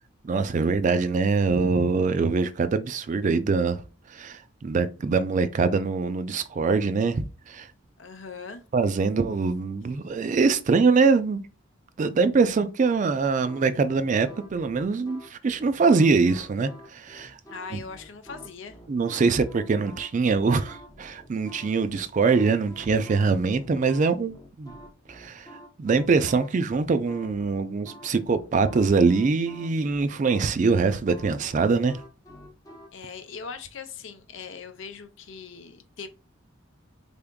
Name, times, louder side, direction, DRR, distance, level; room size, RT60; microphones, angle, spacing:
voice 1, 0.2-3.8 4.1-7.7 8.7-11.4 12.0-17.4 17.7-17.8 18.9-24.7 25.1-25.5 25.8-32.0, right 4 dB, 40° right, 0.3 m, -23 dB
voice 2, 8.0-8.6 17.5-18.8 32.9-36.1, left 5 dB, 65° left, 0.6 m, -40 dB
sound 1, 13.4-32.9, equal, 20° left, 0.6 m, -48 dB
3.7 x 3.5 x 2.2 m
head